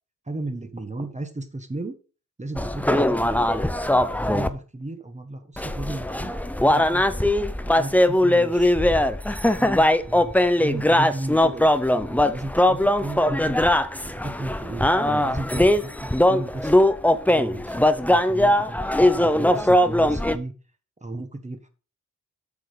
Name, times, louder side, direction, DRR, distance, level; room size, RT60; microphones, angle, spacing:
voice 1, 0.2-2.0 2.4-3.5 4.1-9.1 9.4-13.5 14.0-18.8 19.2-20.5 21.0-21.7, right 2 dB, 25° right, 7 dB, 1.4 m, -35 dB
sound 1, 2.6-4.5 5.6-20.4, left 1 dB, 5° left, 0.6 m, -20 dB
8.4 x 6.4 x 5.1 m, 0.35 s
wide cardioid pair, 115°, 31 cm